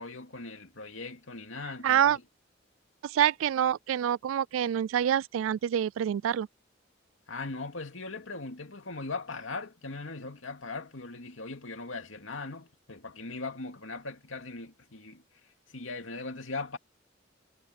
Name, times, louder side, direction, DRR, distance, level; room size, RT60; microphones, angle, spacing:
voice 1, 0.0-2.2 7.3-15.2 15.7-16.8, left 3 dB, 85° left, 2.6 m, -39 dB
voice 2, 1.8-2.2 3.0-6.5, right 9 dB, 90° right, 0.3 m, -26 dB
head